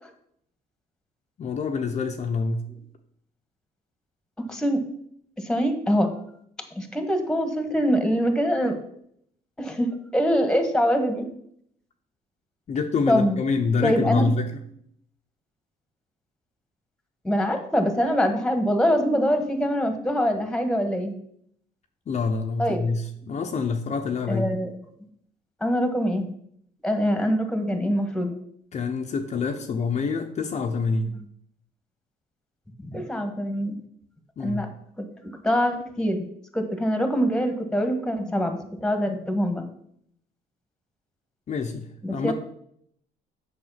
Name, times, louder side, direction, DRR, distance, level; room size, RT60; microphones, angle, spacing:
voice 1, 1.4-2.6 12.7-14.6 22.1-24.5 28.7-31.2 34.4-34.7 41.5-42.3, left 4 dB, 40° left, 3 dB, 0.9 m, -26 dB
voice 2, 4.4-4.8 5.4-6.1 6.7-8.8 9.6-11.2 13.1-13.4 13.8-14.3 17.2-21.1 22.6-22.8 24.3-24.7 25.6-26.3 26.8-28.3 32.9-33.8 34.4-34.7 35.0-36.2 36.5-39.6 42.0-42.3, equal, 5° left, 6 dB, 1.6 m, -24 dB
7.9 x 6.2 x 5.8 m, 0.68 s
cardioid pair, 110°, 17 cm